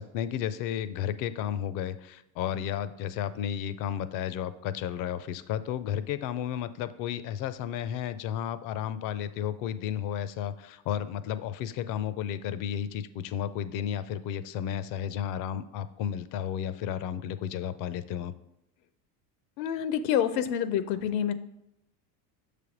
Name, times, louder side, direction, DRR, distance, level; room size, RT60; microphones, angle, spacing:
voice 1, 0.0-18.3, left 9 dB, 45° left, 13 dB, 0.4 m, -33 dB
voice 2, 19.6-21.3, left 9 dB, 80° left, 13 dB, 0.6 m, -27 dB
6.6 x 3.3 x 5.0 m, 0.86 s
supercardioid pair, 100°, 49 cm